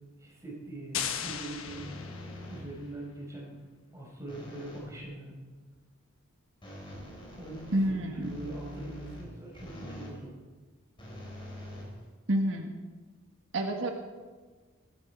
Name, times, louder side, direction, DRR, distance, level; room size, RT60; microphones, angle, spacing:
voice 1, 0.2-1.9 2.5-3.5 3.9-5.4 7.4-7.6 7.8-10.3, right 2 dB, 15° right, -3 dB, 5.0 m, -42 dB
sound 1, 0.9-2.8, left 8 dB, 80° left, 1.1 m, -37 dB
sound 2, 1.7-2.9 4.3-4.9 6.6-10.2 11.0-12.5, left 1 dB, 25° left, 4.6 m, -45 dB
voice 2, 7.7-8.3 12.3-12.7 13.5-13.9, right 1 dB, 65° right, 3 dB, 1.5 m, -28 dB
19.0 x 12.5 x 4.6 m, 1.4 s
head